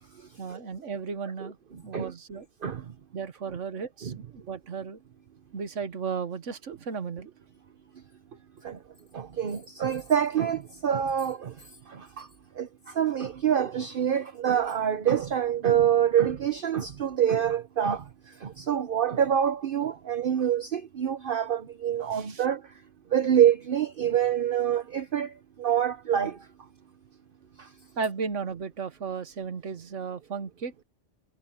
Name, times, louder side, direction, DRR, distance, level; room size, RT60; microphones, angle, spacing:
voice 1, 0.4-1.6 1.8-2.5 3.1-5.0 5.5-7.3 22.1-22.4 28.0-30.7, right 5 dB, 80° right, 1.6 m, -35 dB
voice 2, 9.1-11.5 12.6-12.7 13.0-18.0 18.6-22.6 23.1-25.3 25.6-26.3, right 9 dB, 50° right, 0.9 m, -25 dB
omnidirectional pair, 1.3 m